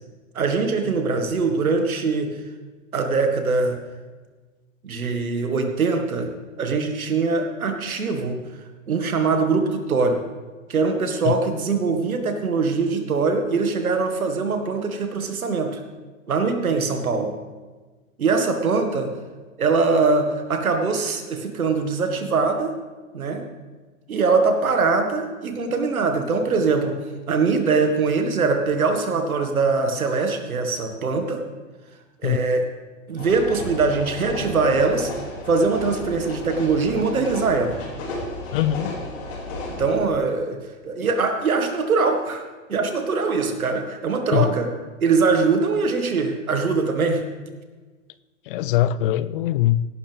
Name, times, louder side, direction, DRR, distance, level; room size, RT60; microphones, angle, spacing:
voice 1, 0.3-2.3 2.9-3.8 4.8-6.3 6.6-8.4 8.9-10.2 10.7-15.8 16.3-17.3 18.2-19.1 19.6-22.7 23.1-23.4 24.1-27.0 27.3-31.4 32.2-32.7 33.1-35.1 35.5-37.8 39.8-40.6 40.8-44.7 45.0-47.2, right 4 dB, 85° right, 5 dB, 2.0 m, -22 dB
sound 1, 33.2-40.0, left 2 dB, 65° left, 5.0 m, -33 dB
voice 2, 38.5-39.0 44.3-44.5 48.5-49.9, left 13 dB, 40° left, 17 dB, 0.4 m, -22 dB
17.0 x 11.0 x 3.6 m, 1.3 s
hypercardioid pair, 115°, 41 cm